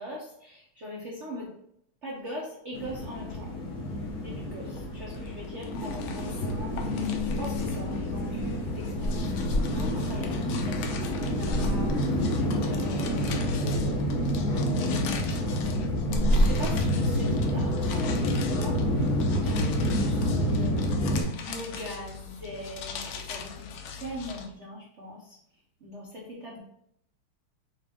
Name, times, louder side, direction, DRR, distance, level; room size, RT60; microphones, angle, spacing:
voice 1, 0.0-1.5 2.0-3.5 4.2-9.3 9.7-14.3 16.0-20.8 21.4-23.7 24.0-25.4 25.8-26.6, left 1 dB, 60° right, -4 dB, 0.7 m, -41 dB
sound 1, 2.7-21.2, equal, 50° left, 1.1 m, -28 dB
sound 2, 4.8-24.5, left 6 dB, 75° left, 1.3 m, -41 dB
5.9 x 2.5 x 3.5 m, 0.73 s
omnidirectional pair, 2.3 m